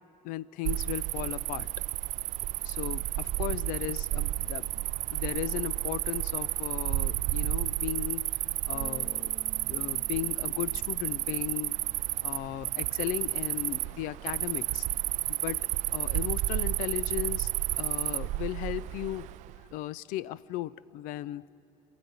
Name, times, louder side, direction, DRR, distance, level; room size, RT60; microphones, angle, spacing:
voice 1, 0.2-1.7 2.6-8.3 8.7-9.4 9.7-11.8 12.2-14.9 15.3-17.5 17.8-19.3 19.7-21.5, left 15 dB, 75° left, 20 dB, 0.5 m, -36 dB
Cricket, 0.6-19.6, right 17 dB, 60° right, 0.4 m, -32 dB
sound 1, 8.7-13.3 13.6-15.0, right 3 dB, 5° right, 0.5 m, -55 dB
27.0 x 13.5 x 9.5 m, 2.9 s
cardioid pair, 160°, 14 cm